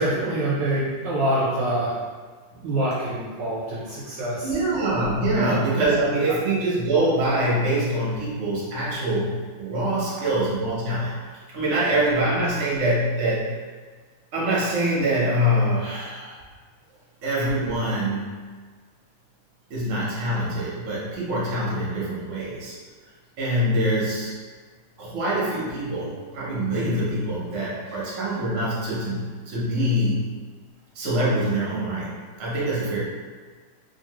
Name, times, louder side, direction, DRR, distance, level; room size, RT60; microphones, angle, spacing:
voice 1, 0.0-2.0 2.6-4.5 5.3-5.6, right 1 dB, 75° right, -6 dB, 1.2 m, -25 dB
voice 2, 4.4-11.1 11.5-13.5 14.3-16.4 17.2-18.4 19.7-22.7 23.4-24.3 25.0-30.3 30.9-33.0, right 1 dB, 50° right, -6 dB, 0.9 m, -24 dB
3.1 x 2.7 x 2.9 m, 1.5 s
omnidirectional pair, 2.3 m